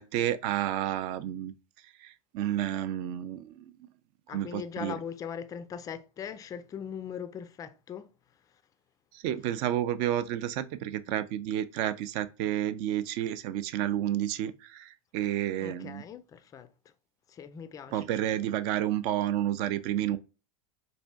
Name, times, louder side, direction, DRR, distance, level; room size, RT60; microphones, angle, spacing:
voice 1, 0.0-1.5 2.0-3.7 4.3-4.9 9.1-16.0 17.9-20.2, right 12 dB, 50° right, 0.4 m, -30 dB
voice 2, 4.3-8.6 15.6-16.7 17.3-18.1, left 7 dB, 20° left, 0.4 m, -40 dB
4.1 x 2.6 x 2.2 m
hypercardioid pair, 105°, 18 cm